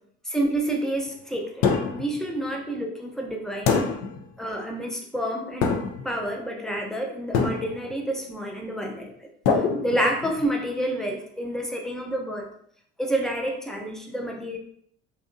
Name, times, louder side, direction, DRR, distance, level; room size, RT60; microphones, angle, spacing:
voice 1, 0.3-3.8 4.4-9.1 9.8-12.5 13.0-14.6, right 1 dB, ahead, 0 dB, 0.5 m, -29 dB
sound 1, 1.6-2.2 3.7-4.2 5.6-6.1 7.3-7.9 9.5-10.4, left 5 dB, 60° left, 0.5 m, -24 dB
2.7 x 2.2 x 2.5 m, 0.65 s
hypercardioid pair, 60°, 34 cm